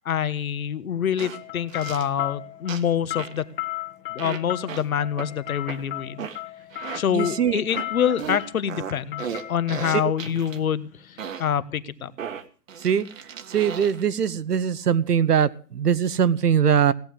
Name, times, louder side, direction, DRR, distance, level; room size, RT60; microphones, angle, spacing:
voice 1, 0.0-3.4 4.1-6.3 6.9-12.1, left 8 dB, 55° left, 15 dB, 1.4 m, -26 dB
sound 1, 1.2-1.4 1.7-2.1 2.7-2.9 3.2-3.4 4.2-4.4 4.7-4.8 5.2-5.3 5.7-5.8 6.2-6.4 6.7-7.0 7.7-7.9 8.2-10.6 11.2-11.5 12.2-14.0, right 7 dB, 50° right, 1.6 m, -35 dB
sound 2, 1.3-11.2, left 16 dB, 35° left, 1.9 m, -36 dB
voice 2, 7.1-7.6 12.8-13.1 13.5-16.9, right 8 dB, 70° right, 16 dB, 1.1 m, -21 dB
17.5 x 9.5 x 7.9 m, 0.41 s
hypercardioid pair, 160°, 49 cm